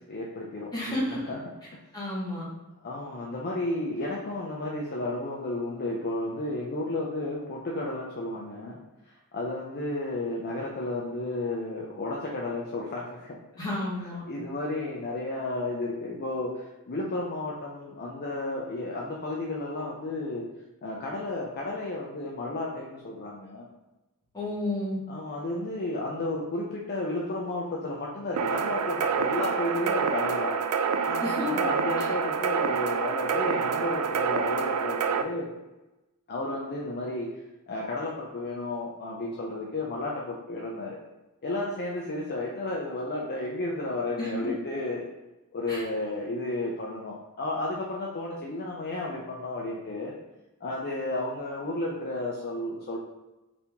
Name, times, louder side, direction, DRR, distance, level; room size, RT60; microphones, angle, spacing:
voice 1, 0.1-1.4 2.0-2.2 2.8-8.8 9.1-13.7 14.0-20.5 20.8-23.7 25.1-30.6 31.0-35.5 36.3-41.0 41.4-45.1 45.5-50.1 50.6-53.0, left 2 dB, 45° left, -3 dB, 0.6 m, -33 dB
voice 2, 0.7-1.3 1.9-2.5 13.6-14.2 24.3-25.0 31.2-31.5 44.2-44.3 45.7-45.8, left 1 dB, 20° left, -7 dB, 1.5 m, -31 dB
sound 1, 28.4-35.2, right 6 dB, 85° right, 0.4 m, -27 dB
4.2 x 2.9 x 3.4 m, 1.0 s
head